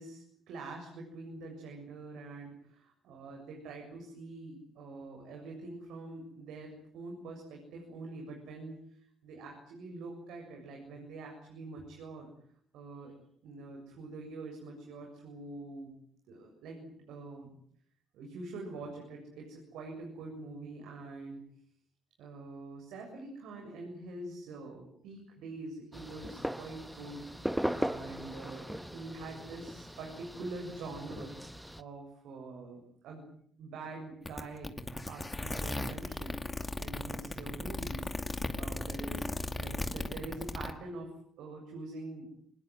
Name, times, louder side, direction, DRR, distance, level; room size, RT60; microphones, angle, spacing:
voice 1, 0.0-12.3 12.7-13.1 13.4-15.9 16.3-17.6 18.1-21.4 22.2-33.3 33.6-34.7 35.1-36.4 36.8-38.1 38.6-42.3, right 3 dB, 85° right, 1 dB, 7.5 m, -45 dB
sound 1, 25.9-31.8, equal, 5° right, 1.3 m, -38 dB
sound 2, 34.3-40.7, left 2 dB, 15° left, 2.5 m, -36 dB
25.5 x 21.0 x 9.4 m, 0.64 s
cardioid pair, 90°, 0 cm